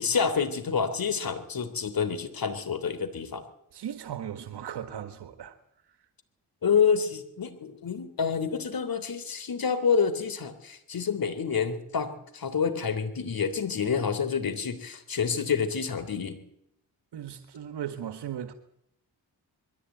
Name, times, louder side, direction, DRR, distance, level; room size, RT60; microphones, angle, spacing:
voice 1, 0.0-3.4 6.6-16.4, left 6 dB, 60° left, 3.3 m, -28 dB
voice 2, 3.7-5.6 5.9-6.0 17.1-18.5, right 9 dB, 80° right, 1.7 m, -37 dB
22.0 x 14.5 x 9.2 m
cardioid pair, 60°, 40 cm